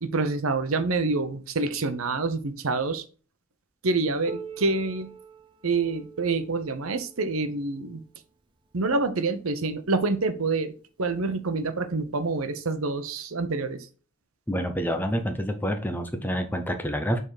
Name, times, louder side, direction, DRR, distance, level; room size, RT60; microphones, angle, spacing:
voice 1, 0.0-3.0 3.8-5.1 5.6-8.0 8.7-10.7 11.0-13.9, right 3 dB, 85° right, 10 dB, 0.8 m, -27 dB
Piano, 4.3-9.6 10.5-10.6 11.0-11.1 11.9-12.0 13.1-13.2, right 3 dB, 20° right, 0.6 m, -46 dB
voice 2, 14.5-17.2, equal, 10° left, 5 dB, 0.8 m, -28 dB
6.7 x 3.7 x 4.8 m, 0.38 s
head